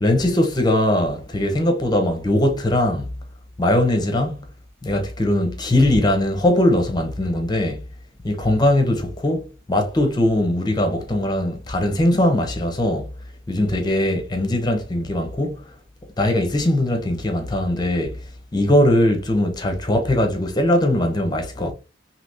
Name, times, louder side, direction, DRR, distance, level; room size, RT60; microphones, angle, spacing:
voice 1, 0.0-3.1 3.6-4.4 4.8-7.8 8.2-13.1 13.5-15.6 16.2-18.2 18.5-21.7, left 1 dB, 20° left, 0.7 m, -20 dB
3.4 x 2.8 x 2.7 m
head